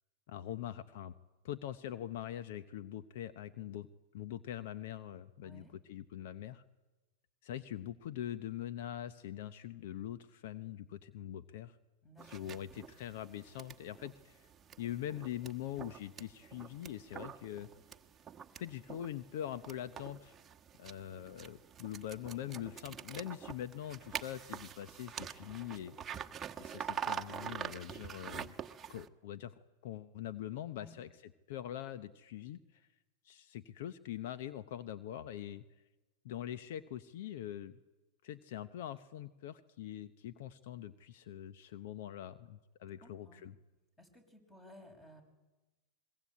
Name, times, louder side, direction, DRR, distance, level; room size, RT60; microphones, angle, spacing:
voice 1, 0.3-1.1 1.4-3.9 4.1-5.6 5.9-6.6 7.4-11.8 12.2-14.5 14.8-17.7 18.6-20.4 20.8-26.0 26.6-28.5 28.9-29.5 29.8-32.9 33.2-35.6 36.2-37.8 38.2-43.6, left 11 dB, 65° left, 13 dB, 0.9 m, -43 dB
voice 2, 5.4-5.7 12.0-12.5 30.7-31.0 43.0-43.4 44.0-45.2, left 1 dB, 15° left, 7 dB, 6.0 m, -57 dB
sound 1, 12.2-29.1, right 8 dB, 25° right, 1.2 m, -46 dB
26.0 x 21.5 x 8.6 m, 1.1 s
hypercardioid pair, 120°, 0 cm